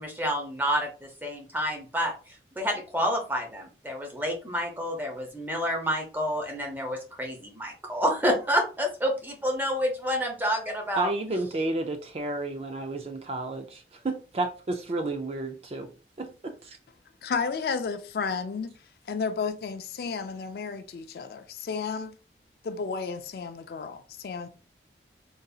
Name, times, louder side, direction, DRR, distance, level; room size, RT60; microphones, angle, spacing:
voice 1, 0.0-11.1, equal, 10° right, 0.7 m, -29 dB
voice 2, 11.0-15.9 16.2-16.8, right 2 dB, 35° right, 0.3 m, -31 dB
voice 3, 17.2-18.7 19.1-22.1 22.6-24.5, left 5 dB, 55° left, 0.3 m, -32 dB
3.9 x 2.6 x 2.3 m
head